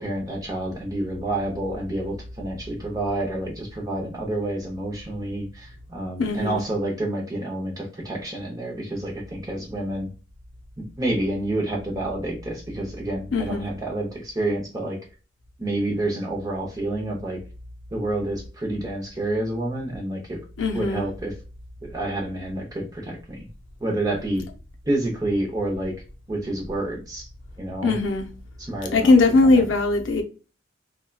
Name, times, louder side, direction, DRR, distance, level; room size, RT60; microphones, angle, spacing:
voice 1, 0.0-10.1 10.8-15.0 15.6-17.4 17.9-20.4 20.7-21.3 21.8-23.5 23.8-24.4 24.8-25.9 26.3-27.3 27.6-27.9 28.6-29.1 29.4-29.7, right 1 dB, 20° right, 0.7 m, -28 dB
voice 2, 6.2-6.6 13.3-13.7 20.6-21.0 27.8-28.3 28.9-30.2, left 3 dB, 70° left, 0.5 m, -19 dB
2.8 x 2.2 x 2.2 m
head